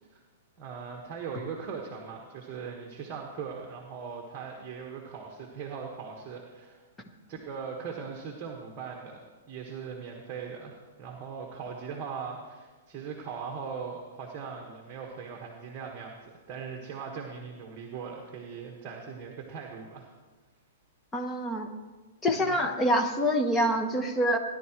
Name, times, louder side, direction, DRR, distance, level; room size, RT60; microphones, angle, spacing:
voice 1, 0.6-6.8 7.3-20.1 22.4-22.7, right 6 dB, 25° right, -1 dB, 1.5 m, -40 dB
voice 2, 21.1-21.7 22.2-24.4, equal, 10° left, 4 dB, 1.0 m, -26 dB
18.0 x 11.0 x 3.1 m, 1.3 s
hypercardioid pair, 160°, 0 cm